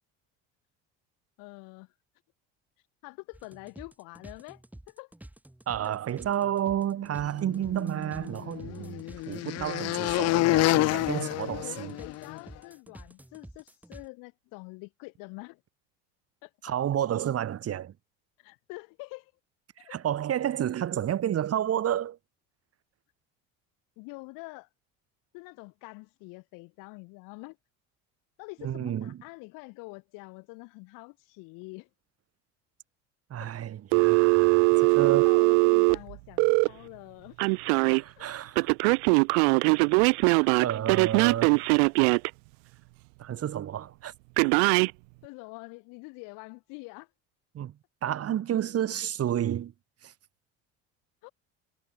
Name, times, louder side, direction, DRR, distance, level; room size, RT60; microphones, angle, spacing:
voice 1, 1.4-1.9 3.0-5.1 5.8-5.9 11.6-15.6 16.4-16.7 18.4-19.3 19.8-20.0 20.9-21.1 24.0-24.7 25.3-27.6 28.4-31.9 33.4-33.5 34.6-37.4 38.2-38.3 41.4-41.5 45.2-47.1 51.2-51.3, left 28 dB, 80° left, 4.3 m, -46 dB
sound 1, 3.3-14.1, right 1 dB, 5° right, 7.4 m, -49 dB
voice 2, 5.7-11.9 16.6-17.9 19.9-22.2 28.6-29.2 33.3-35.3 37.8-38.7 40.2-41.6 43.2-44.1 47.5-47.7 48.0-49.7 50.0-50.1, right 10 dB, 45° right, 5.9 m, -31 dB
sound 2, 7.8-12.4, left 18 dB, 50° left, 0.5 m, -28 dB
Telephone, 33.9-36.7 37.4-38.0 38.6-42.3 44.4-44.9, right 36 dB, 90° right, 1.1 m, -21 dB
cardioid pair, 110°, 32 cm